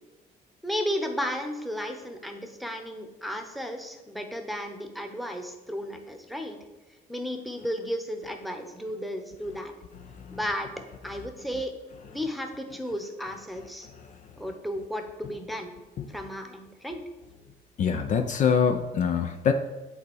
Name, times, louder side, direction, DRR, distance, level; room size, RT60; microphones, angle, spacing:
voice 1, 0.6-6.6 7.1-9.7 10.3-10.7 11.0-11.7 12.1-13.9 14.4-15.7 16.1-17.0, equal, ahead, 5 dB, 1.0 m, -34 dB
voice 2, 17.8-19.5, left 7 dB, 50° left, 7 dB, 0.6 m, -24 dB
8.1 x 4.1 x 6.3 m, 1.1 s
cardioid pair, 110°, 17 cm